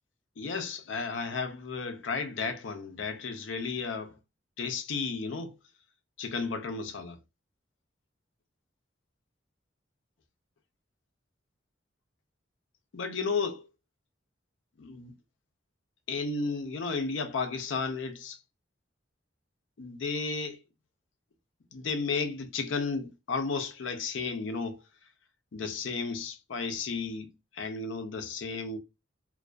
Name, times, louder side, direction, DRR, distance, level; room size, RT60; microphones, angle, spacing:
voice 1, 0.4-4.2 4.6-5.5 6.2-7.2 12.9-13.7 14.8-15.1 16.1-18.4 19.8-20.6 21.7-24.8 25.5-28.8, left 4 dB, 80° left, 0.5 m, -33 dB
2.5 x 2.2 x 2.2 m
head